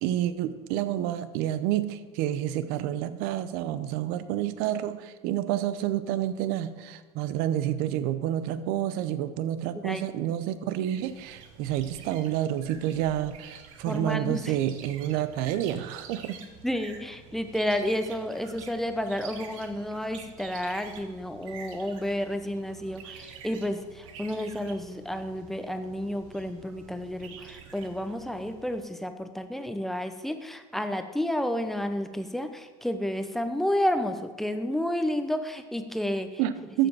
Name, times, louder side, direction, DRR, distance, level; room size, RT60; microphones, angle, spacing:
voice 1, 0.0-16.4 36.4-36.9, right 12 dB, 70° right, 13 dB, 0.7 m, -29 dB
sound 1, 10.8-28.8, right 7 dB, 90° right, 1.1 m, -48 dB
voice 2, 13.9-14.4 16.6-36.3, left 1 dB, ahead, 8 dB, 0.7 m, -31 dB
13.5 x 5.2 x 4.7 m, 1.4 s
supercardioid pair, 110°, 17 cm